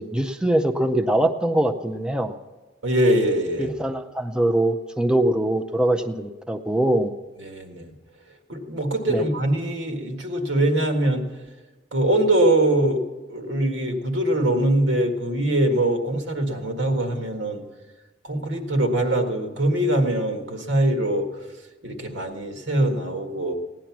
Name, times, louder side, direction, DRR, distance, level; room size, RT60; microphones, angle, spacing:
voice 1, 0.0-2.4 3.6-7.1 9.1-9.2, right 1 dB, 5° right, 6 dB, 0.5 m, -22 dB
voice 2, 2.8-3.7 7.4-7.9 8.5-11.2 11.9-13.0 13.3-17.6 18.2-21.3 21.8-23.5, right 1 dB, 85° right, 4 dB, 1.7 m, -22 dB
17.0 x 10.0 x 5.9 m, 1.2 s
head